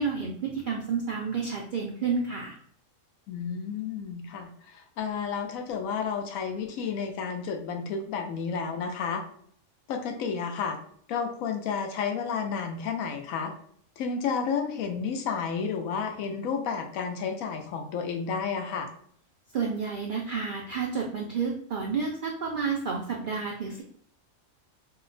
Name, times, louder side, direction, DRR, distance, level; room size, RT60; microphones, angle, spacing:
voice 1, 0.0-2.6 19.5-23.8, right 5 dB, 75° right, -1 dB, 0.4 m, -30 dB
voice 2, 3.3-9.2 9.9-10.8 11.1-13.5 14.0-18.9, left 6 dB, 90° left, 4 dB, 1.0 m, -31 dB
2.9 x 2.1 x 3.8 m, 0.64 s
omnidirectional pair, 1.4 m